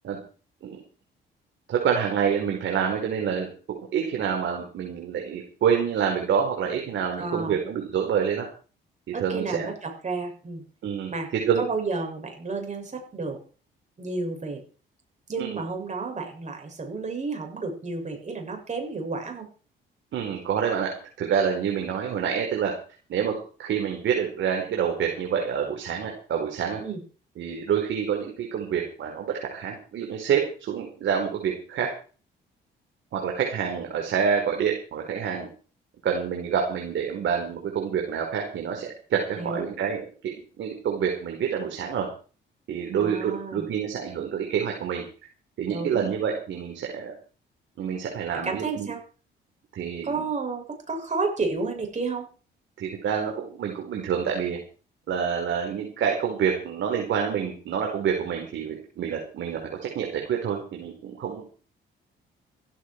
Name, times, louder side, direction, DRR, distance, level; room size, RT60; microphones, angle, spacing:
voice 1, 1.7-3.5 3.9-8.5 9.2-9.7 10.8-11.6 15.4-15.6 20.1-20.9 21.2-22.7 23.1-23.3 23.6-26.8 27.4-31.9 33.1-35.5 36.0-42.1 42.7-45.0 45.6-47.1 47.8-48.9 49.7-50.2 52.8-54.6 55.1-61.4, right 7 dB, 70° right, 1 dB, 4.9 m, -27 dB
voice 2, 7.2-7.6 9.1-10.6 11.1-11.3 11.6-13.4 14.0-14.6 15.3-19.5 26.8-27.0 39.4-39.7 42.9-43.7 45.7-46.1 48.3-49.0 50.0-52.3, right 3 dB, 35° right, 3 dB, 7.2 m, -31 dB
15.5 x 15.0 x 4.8 m, 0.38 s
cardioid pair, 90°, 20 cm